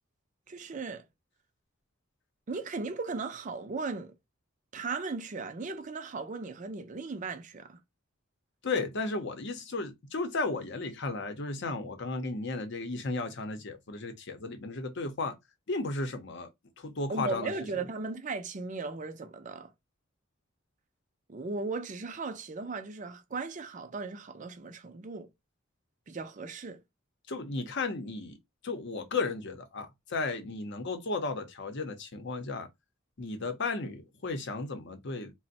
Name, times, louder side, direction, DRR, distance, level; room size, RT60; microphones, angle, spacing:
voice 1, 0.5-1.1 2.5-4.1 4.7-7.8 17.1-19.7 21.3-25.3 26.1-26.8, right 3 dB, 40° right, 0.5 m, -37 dB
voice 2, 8.6-15.3 15.7-16.5 16.8-17.5 27.3-28.4 28.6-32.7 33.2-35.3, left 3 dB, 60° left, 0.7 m, -34 dB
2.5 x 2.1 x 3.9 m
head